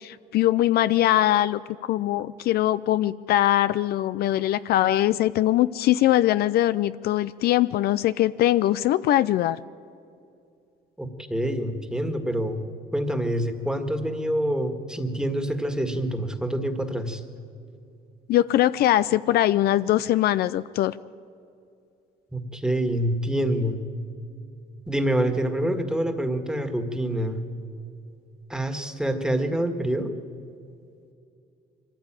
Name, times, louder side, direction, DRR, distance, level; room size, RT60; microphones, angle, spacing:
voice 1, 0.0-9.6 18.3-21.0, left 13 dB, 65° left, 15 dB, 0.5 m, -22 dB
voice 2, 11.0-12.6 12.9-17.2 22.3-23.8 24.9-27.4 28.5-30.1, right 1 dB, 5° right, 6 dB, 1.8 m, -26 dB
23.5 x 14.5 x 9.0 m, 2.5 s
cardioid pair, 110°, 17 cm